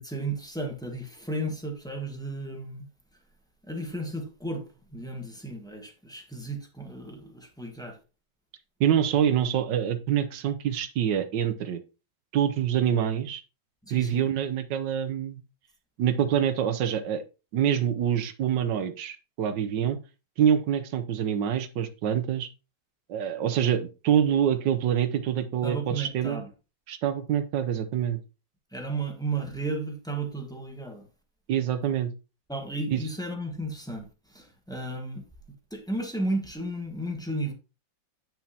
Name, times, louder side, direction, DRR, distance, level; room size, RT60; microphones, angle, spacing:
voice 1, 0.0-2.9 3.6-8.0 13.8-14.3 25.6-26.5 28.7-31.1 32.5-35.3 35.7-37.5, right 2 dB, ahead, 1.1 m, -34 dB
voice 2, 8.8-11.8 12.3-13.4 13.9-15.4 16.0-17.2 17.5-20.0 20.4-22.5 23.1-26.4 26.9-28.2 31.5-32.1 32.9-33.0, right 9 dB, 75° right, 1.4 m, -26 dB
9.0 x 5.9 x 2.8 m
omnidirectional pair, 2.0 m